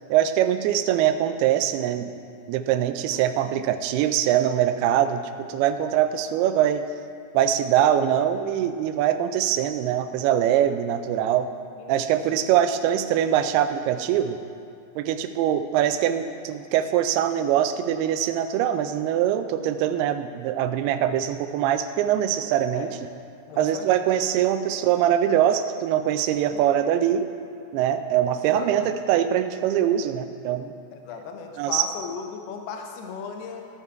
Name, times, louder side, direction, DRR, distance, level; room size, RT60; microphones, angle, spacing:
voice 1, 0.1-2.1 2.5-6.8 7.3-11.5 11.9-14.4 15.0-22.9 23.6-27.3 27.7-30.7 31.6-31.8, right 10 dB, 90° right, 9 dB, 2.6 m, -23 dB
voice 2, 23.5-24.0 26.5-26.6 28.5-29.0 30.9-33.7, left 6 dB, 85° left, 3 dB, 2.8 m, -36 dB
13.0 x 7.2 x 4.6 m, 2.5 s
omnidirectional pair, 4.5 m